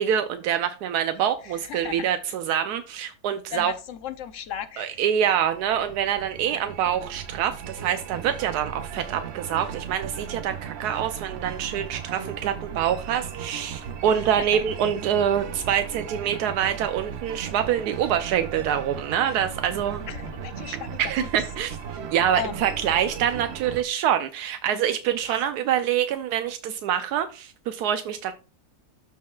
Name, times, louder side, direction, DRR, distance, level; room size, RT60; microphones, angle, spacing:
voice 1, 0.0-3.7 4.8-20.0 21.0-21.8 22.1-28.3, right 9 dB, 85° right, 1.1 m, -25 dB
voice 2, 1.4-2.1 3.5-4.9 14.1-14.6 20.1-21.3 22.3-22.7 25.2-25.5, left 9 dB, 65° left, 0.9 m, -36 dB
sound 1, 4.9-23.8, right 7 dB, 60° right, 0.7 m, -37 dB
12.5 x 4.6 x 2.3 m
omnidirectional pair, 1.6 m